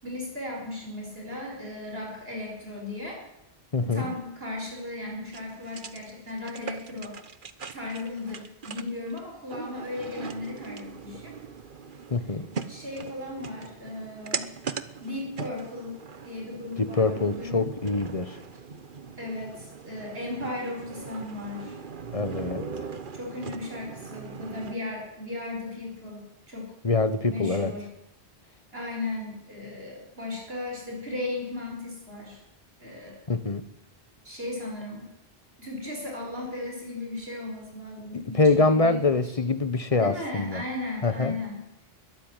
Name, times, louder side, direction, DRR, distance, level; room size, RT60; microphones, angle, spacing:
voice 1, 0.0-3.2 3.8-7.2 7.7-11.3 12.7-14.5 15.0-17.7 19.2-21.8 23.1-26.7 27.2-27.9 28.7-32.4 32.8-33.2 34.2-35.1 35.6-39.4 39.9-41.6, left 2 dB, 70° right, 0 dB, 5.5 m, -36 dB
voice 2, 3.7-4.1 12.1-12.5 16.8-18.4 22.1-22.7 26.8-27.7 33.3-33.6 38.3-40.6 41.0-41.3, left 3 dB, 35° left, 12 dB, 1.4 m, -24 dB
sound 1, 5.3-24.8, right 5 dB, 55° right, 1.3 m, -40 dB
22.0 x 13.5 x 9.2 m, 0.84 s
omnidirectional pair, 1.1 m